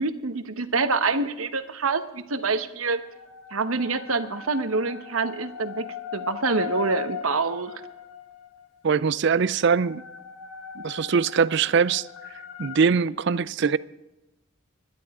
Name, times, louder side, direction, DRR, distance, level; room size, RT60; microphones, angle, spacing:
voice 1, 0.0-3.0 3.5-7.7, right 4 dB, 75° right, 1.1 m, -26 dB
sound 1, 3.0-8.7 9.5-12.9, left 9 dB, 85° left, 1.9 m, -39 dB
voice 2, 8.8-10.0 10.8-12.1 12.6-13.8, right 6 dB, 55° right, 0.4 m, -22 dB
25.0 x 12.0 x 3.7 m
head